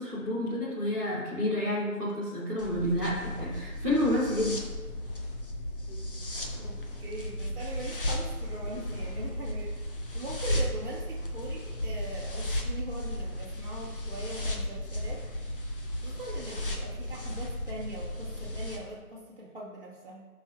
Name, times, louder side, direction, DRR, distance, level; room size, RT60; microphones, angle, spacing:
voice 1, 0.0-4.6, left 1 dB, 10° left, -12 dB, 1.3 m, -29 dB
sound 1, 2.6-18.8, left 1 dB, 35° left, 0.9 m, -35 dB
voice 2, 6.6-9.8 10.1-15.2 15.6-15.7 16.0-20.3, right 1 dB, 35° right, -8 dB, 1.4 m, -41 dB
11.0 x 5.4 x 2.7 m, 1.4 s
figure-of-eight pair, 155°, 45 cm